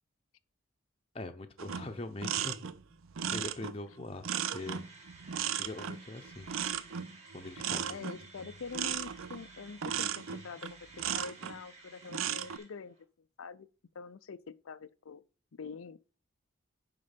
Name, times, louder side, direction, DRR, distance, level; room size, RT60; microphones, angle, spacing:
voice 1, 1.1-2.7 3.3-4.8 5.6-6.5 7.3-8.0 8.4-8.5, left 2 dB, 30° left, 0.7 m, -42 dB
sound 1, 1.6-11.6 12.0-12.6, right 8 dB, 80° right, 0.5 m, -36 dB
sound 2, 4.6-13.0, right 3 dB, 30° right, 1.7 m, -55 dB
voice 2, 7.9-13.7 13.9-15.2 15.6-16.0, left 5 dB, 85° left, 0.5 m, -45 dB
9.6 x 3.8 x 5.2 m
head